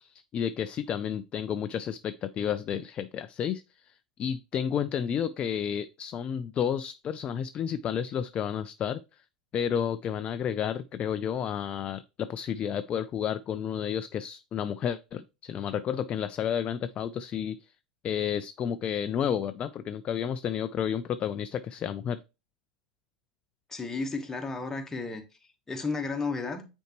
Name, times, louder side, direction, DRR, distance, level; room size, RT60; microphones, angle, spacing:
voice 1, 0.0-9.0 9.5-17.7 18.0-22.2, left 8 dB, 30° left, 0.4 m, -31 dB
voice 2, 23.7-25.2 25.7-26.7, left 4 dB, 10° left, 1.3 m, -33 dB
9.0 x 4.4 x 3.1 m
figure-of-eight pair, 85°, 4 cm